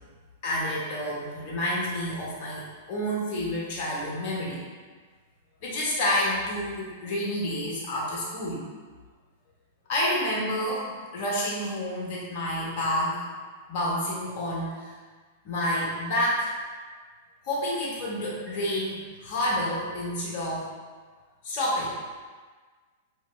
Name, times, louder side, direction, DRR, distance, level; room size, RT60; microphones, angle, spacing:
voice 1, 0.4-4.6 5.6-8.6 9.9-13.2 13.7-14.9 15.4-16.5 17.4-20.7 21.4-21.9, left 1 dB, 50° left, -5 dB, 1.0 m, -29 dB
3.0 x 2.5 x 3.3 m, 1.4 s
figure-of-eight pair, 100°, 0 cm